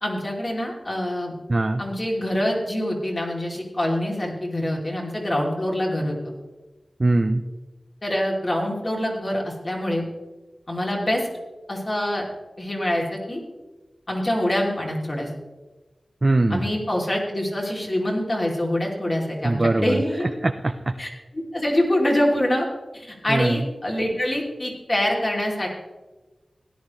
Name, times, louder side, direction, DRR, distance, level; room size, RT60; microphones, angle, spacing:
voice 1, 0.0-1.3 1.8-6.3 8.0-10.0 10.7-11.3 11.7-12.2 12.6-13.4 14.1-15.3 16.5-20.3 21.0-22.7 22.9-25.7, left 1 dB, 35° left, -1 dB, 3.0 m, -25 dB
voice 2, 1.5-1.8 7.0-7.4 16.2-16.7 19.4-20.9 23.3-23.7, right 2 dB, 35° right, 6 dB, 0.5 m, -22 dB
16.5 x 11.0 x 3.2 m, 1.2 s
wide cardioid pair, 90°, 0 cm